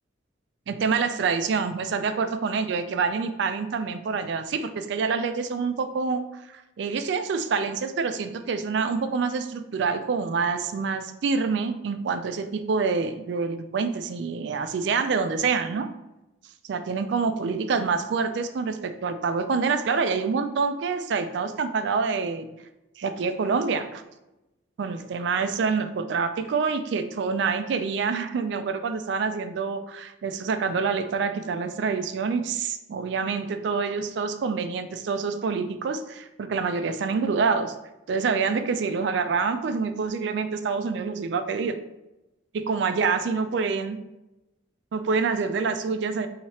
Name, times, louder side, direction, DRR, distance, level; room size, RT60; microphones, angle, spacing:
voice 1, 0.7-15.9 16.7-22.5 23.0-24.0 24.8-37.7 38.1-41.8 42.5-44.0 44.9-46.3, right 5 dB, 65° right, 9 dB, 0.3 m, -26 dB
3.1 x 2.8 x 4.2 m, 0.95 s
head